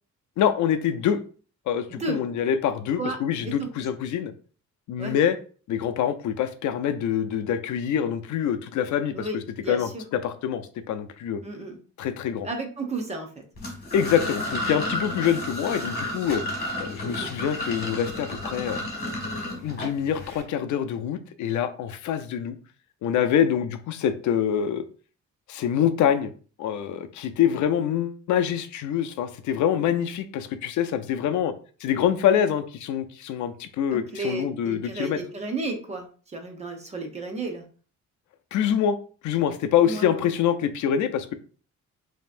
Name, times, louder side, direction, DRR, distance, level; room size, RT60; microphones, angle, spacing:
voice 1, 0.4-1.2 1.7-4.3 4.9-5.4 5.7-11.4 12.0-12.5 13.9-16.4 16.8-18.8 19.5-22.6 23.0-24.8 25.5-26.3 26.6-31.5 31.8-35.2 38.5-39.0 39.2-41.3, left 9 dB, 80° left, 9 dB, 0.5 m, -25 dB
voice 2, 1.9-2.2 3.0-3.2 3.4-3.7 5.0-5.2 9.1-10.0 11.4-11.8 12.4-13.4 17.0-17.2 33.9-37.6 39.8-40.3, right 3 dB, 20° right, 3 dB, 0.7 m, -33 dB
sound 1, 13.6-20.4, left 1 dB, 35° left, 1.7 m, -32 dB
5.4 x 2.8 x 2.5 m, 0.39 s
cardioid pair, 180°, 29 cm